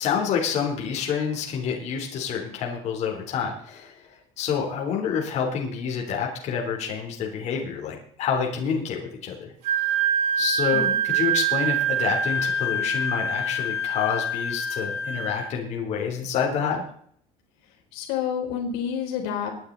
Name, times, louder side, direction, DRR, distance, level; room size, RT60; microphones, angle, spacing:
voice 1, 0.0-4.1 4.4-9.5 10.4-16.8, left 7 dB, 45° left, 0 dB, 3.6 m, -28 dB
Wind instrument woodwind instrument, 9.6-15.5, right 4 dB, 85° right, 6.1 m, -25 dB
voice 2, 17.9-19.5, left 8 dB, 80° left, 2 dB, 3.9 m, -29 dB
22.0 x 10.0 x 4.1 m, 0.62 s
cardioid pair, 140°, 15 cm